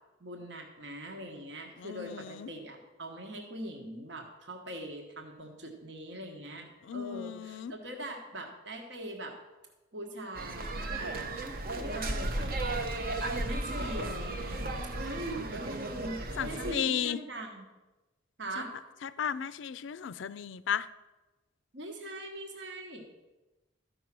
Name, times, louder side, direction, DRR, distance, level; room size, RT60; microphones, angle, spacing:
voice 1, 0.2-6.7 6.9-9.4 9.9-11.3 11.7-12.6 13.4-14.7 14.9-17.6 18.4-18.7 21.7-23.1, right 1 dB, 65° right, 2 dB, 1.3 m, -41 dB
voice 2, 1.8-2.5 6.9-7.7 16.4-17.2 19.0-20.9, left 8 dB, 70° left, 16 dB, 0.4 m, -34 dB
sound 1, 10.3-16.8, right 2 dB, 45° right, 0.8 m, -35 dB
13.5 x 5.4 x 6.0 m, 1.1 s
head